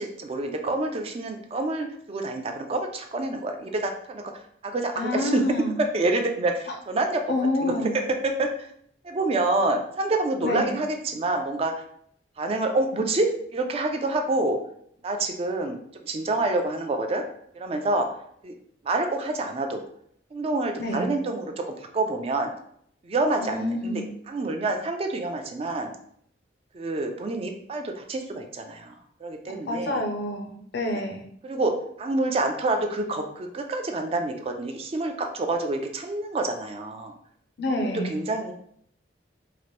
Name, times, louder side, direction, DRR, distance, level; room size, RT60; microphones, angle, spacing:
voice 1, 0.0-5.4 5.8-7.2 7.6-8.7 9.0-11.8 12.4-14.6 15.0-15.8 16.0-17.2 17.5-18.1 18.4-18.5 18.8-19.8 20.3-22.5 23.0-25.9 26.7-30.0 30.8-31.0 31.4-37.1 38.0-38.5, right 2 dB, 35° right, 4 dB, 0.3 m, -27 dB
voice 2, 5.0-5.8 6.7-6.8 7.3-8.0 10.4-10.8 20.8-21.1 23.4-24.1 29.7-31.2 37.6-38.2, left 1 dB, 60° left, 4 dB, 0.5 m, -28 dB
2.9 x 2.5 x 3.1 m, 0.67 s
head